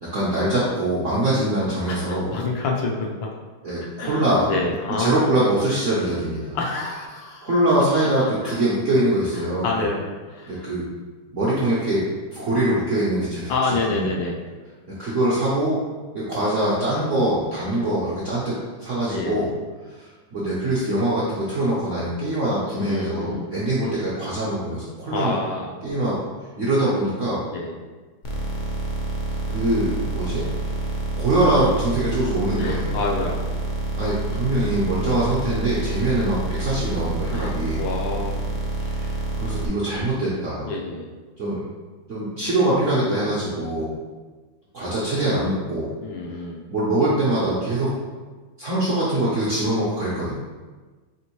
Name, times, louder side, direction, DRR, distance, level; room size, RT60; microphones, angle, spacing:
voice 1, 0.0-2.3 3.6-4.5 5.0-6.6 7.4-9.7 10.5-10.8 11.3-12.0 12.3-14.1 15.0-15.8 16.1-19.5 19.8-25.4 25.8-26.2 26.6-27.4 29.5-30.5 31.2-33.0 34.0-37.8 38.8-40.7 41.4-41.6 42.1-43.9 44.7-45.9 46.7-47.9 48.6-50.3, right 1 dB, 65° right, -7 dB, 0.7 m, -23 dB
voice 2, 1.9-3.3 4.0-5.4 6.5-7.5 8.0-8.1 8.4-8.5 9.6-10.7 13.5-14.4 19.1-19.4 22.8-23.5 25.0-25.8 27.5-27.8 32.6-33.4 35.0-35.2 37.3-37.5 37.8-38.4 40.6-41.1 46.0-46.6, left 3 dB, 75° left, -1 dB, 1.3 m, -28 dB
sound 1, 28.2-39.7, right 2 dB, 60° left, 0.8 m, -28 dB
4.3 x 3.5 x 3.0 m, 1.3 s
omnidirectional pair, 2.2 m